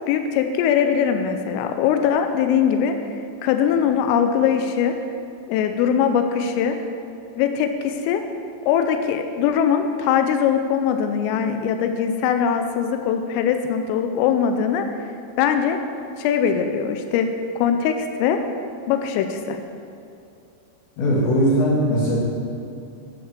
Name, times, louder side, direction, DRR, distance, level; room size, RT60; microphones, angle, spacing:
voice 1, 0.1-2.9 3.4-4.9 5.5-6.8 7.4-8.2 8.7-14.9 15.4-15.8 16.2-18.4 18.9-19.6, left 8 dB, 85° left, 6 dB, 3.3 m, -21 dB
voice 2, 21.0-22.2, equal, 65° left, -5 dB, 4.0 m, -19 dB
10.0 x 8.8 x 7.3 m, 2.6 s
omnidirectional pair, 5.9 m